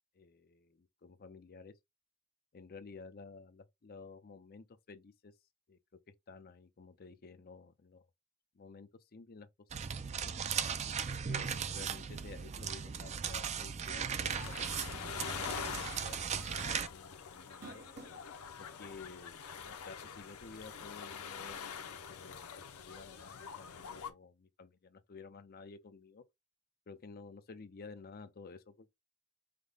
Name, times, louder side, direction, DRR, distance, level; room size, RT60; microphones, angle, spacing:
voice 1, 0.2-1.8 2.5-5.3 5.7-5.8 6.3-8.1 8.6-9.5 10.0-10.3 11.1-17.8 18.8-26.2 26.9-28.9, left 4 dB, 40° left, 0.5 m, -53 dB
sound 1, 9.7-16.9, right 7 dB, 30° right, 0.3 m, -37 dB
sound 2, 14.2-24.1, left 7 dB, 80° left, 0.7 m, -45 dB
sound 3, 15.7-15.9 16.2-16.3 17.3-18.3 19.0-19.1 20.7-20.8, right 3 dB, 45° right, 1.0 m, -51 dB
5.1 x 2.1 x 3.9 m
head